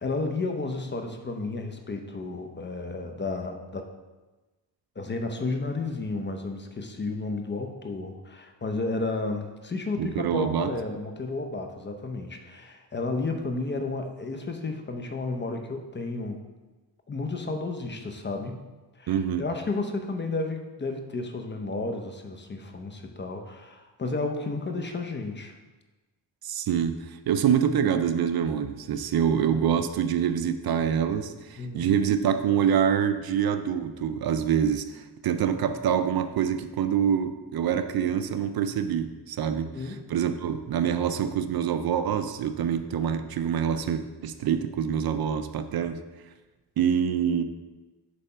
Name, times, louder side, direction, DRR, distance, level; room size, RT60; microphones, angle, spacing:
voice 1, 0.0-3.9 5.0-16.4 17.1-18.6 19.0-25.6 31.6-31.9 39.6-40.1, left 3 dB, 25° left, 4 dB, 0.7 m, -32 dB
voice 2, 10.0-10.7 19.1-19.5 26.4-46.0 46.8-47.4, right 8 dB, 60° right, 9 dB, 0.5 m, -26 dB
8.4 x 3.3 x 5.5 m, 1.2 s
cardioid pair, 115°, 42 cm